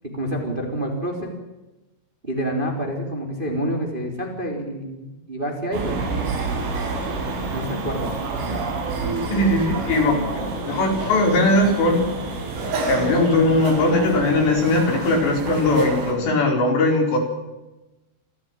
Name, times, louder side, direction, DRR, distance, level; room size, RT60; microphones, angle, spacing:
voice 1, 0.1-1.3 2.2-5.9 7.5-8.1, right 1 dB, 10° right, 2 dB, 3.3 m, -27 dB
sound 1, 5.7-16.1, right 3 dB, 85° right, 7.4 m, -28 dB
voice 2, 9.3-12.1 12.9-17.2, left 2 dB, 60° left, 2 dB, 6.7 m, -19 dB
28.0 x 13.5 x 8.9 m, 1.0 s
omnidirectional pair, 5.7 m